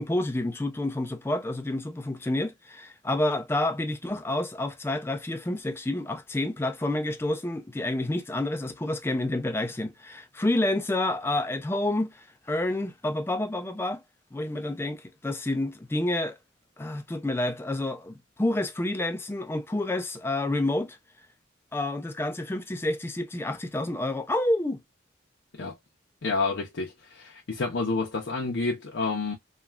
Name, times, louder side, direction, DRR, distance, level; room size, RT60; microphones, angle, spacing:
voice 1, 0.0-14.0 14.3-16.4 16.8-21.0 21.7-24.8, left 1 dB, 10° left, 0.3 m, -29 dB
voice 2, 26.2-29.4, left 3 dB, 65° left, 0.6 m, -29 dB
3.3 x 2.3 x 2.2 m
head